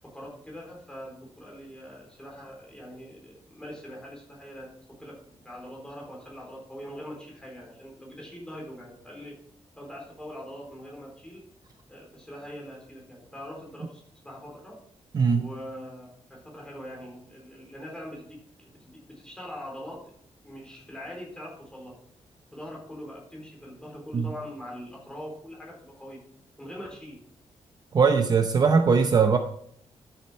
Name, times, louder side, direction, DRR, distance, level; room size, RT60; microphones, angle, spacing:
voice 1, 0.0-9.4 9.8-11.4 11.9-14.8 15.3-20.0 20.4-21.9 22.5-26.2 26.6-27.2, equal, 5° left, -3 dB, 4.2 m, -42 dB
voice 2, 27.9-29.4, right 5 dB, 35° right, 6 dB, 0.7 m, -20 dB
13.0 x 7.2 x 4.4 m, 0.66 s
wide cardioid pair, 145°, 11 cm